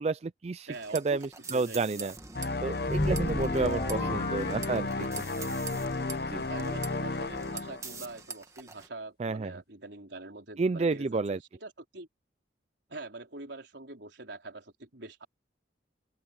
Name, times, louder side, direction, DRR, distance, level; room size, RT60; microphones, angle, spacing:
voice 1, 0.0-0.7 0.9-2.1 2.6-5.1 5.7-5.8 6.3-6.4 9.2-9.5 10.6-11.4, right 3 dB, 35° right, 0.4 m, -30 dB
sound 1, 0.7-8.9, right 4 dB, 15° right, 1.8 m, -45 dB
voice 2, 0.7-1.2 1.5-2.1 3.8-4.2 6.5-12.1 12.9-15.3, right 2 dB, 70° right, 4.1 m, -44 dB
sound 2, 2.3-8.2, left 3 dB, 55° left, 0.9 m, -33 dB
sound 3, 2.8-5.4, left 1 dB, 25° left, 0.8 m, -33 dB
open air
head